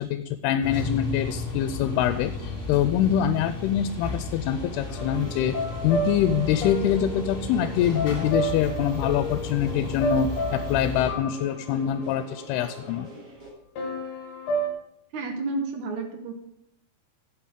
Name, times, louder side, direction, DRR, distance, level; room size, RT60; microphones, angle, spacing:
voice 1, 0.0-5.6 5.8-13.1, left 10 dB, 85° left, 11 dB, 2.6 m, -25 dB
sound 1, 0.6-11.1, left 3 dB, 25° left, 2.2 m, -34 dB
sound 2, 4.5-13.5, right 2 dB, 35° right, 4.5 m, -43 dB
sound 3, 5.0-13.0 13.8-14.7, right 2 dB, 50° left, 2.7 m, -32 dB
voice 2, 15.1-16.3, right 3 dB, 65° right, 5 dB, 2.2 m, -31 dB
8.5 x 8.0 x 7.2 m, 0.80 s
omnidirectional pair, 4.6 m